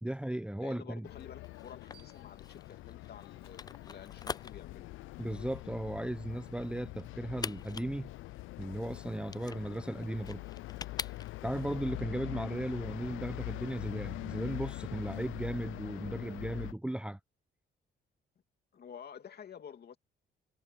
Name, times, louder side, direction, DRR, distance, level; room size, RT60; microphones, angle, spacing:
voice 1, 0.0-1.1 5.2-8.1 8.6-10.4 11.4-17.2, right 1 dB, 5° right, 0.8 m, -36 dB
voice 2, 0.6-4.9 18.7-20.0, left 8 dB, 55° left, 2.8 m, -50 dB
sound 1, 1.0-16.7, left 19 dB, 85° left, 0.5 m, -43 dB
sound 2, 1.4-11.6, left 5 dB, 20° left, 0.3 m, -45 dB
sound 3, 1.9-4.7, right 10 dB, 25° right, 4.7 m, -69 dB
cardioid pair, 90°, 20 cm